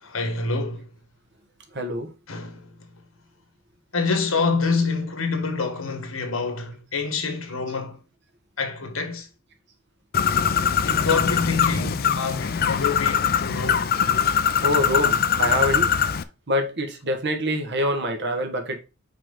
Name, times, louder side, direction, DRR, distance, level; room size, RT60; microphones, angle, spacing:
voice 1, 0.0-0.9 2.3-2.7 3.9-8.0 8.6-9.3 10.8-13.9, left 4 dB, 85° left, 1.6 m, -26 dB
voice 2, 1.7-2.1 14.6-16.0 16.5-18.8, equal, 60° right, 1.6 m, -25 dB
Bird, 10.1-16.2, left 7 dB, 50° left, 0.5 m, -22 dB
5.8 x 4.9 x 3.8 m
head